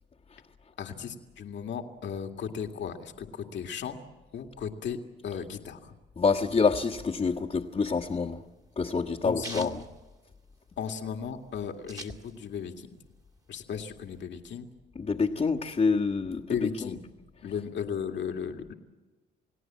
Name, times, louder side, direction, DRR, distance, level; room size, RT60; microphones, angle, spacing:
voice 1, 0.8-4.0 4.3-5.0 5.2-5.9 9.2-9.7 10.8-13.0 13.5-14.7 16.5-17.0 17.4-18.7, left 7 dB, 65° left, 4 dB, 2.2 m, -35 dB
voice 2, 6.2-8.4 8.8-9.7 14.9-16.4, left 4 dB, 35° left, -3 dB, 1.5 m, -26 dB
sound 1, 7.7-10.8 11.2-11.3 11.4-12.7 13.1-14.2, right 1 dB, 20° right, 2.1 m, -45 dB
29.5 x 18.0 x 7.5 m, 1.2 s
cardioid pair, 90°, 20 cm